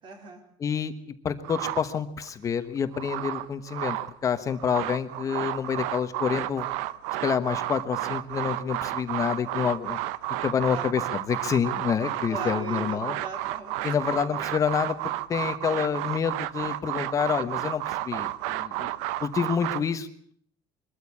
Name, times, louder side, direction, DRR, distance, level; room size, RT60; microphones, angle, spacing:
voice 1, 0.0-0.4 10.7-10.9 12.3-14.5, right 3 dB, 45° right, 5 dB, 4.4 m, -40 dB
voice 2, 0.6-0.9 1.2-6.7 7.2-10.0 10.4-13.2 13.8-15.0 15.3-18.9 19.2-20.3, left 7 dB, 25° left, 10 dB, 1.2 m, -28 dB
sound 1, 1.4-2.3 2.8-4.1 4.5-19.8, right 15 dB, 85° right, 0.9 m, -32 dB
22.5 x 13.5 x 8.4 m, 0.63 s
cardioid pair, 150°, 12 cm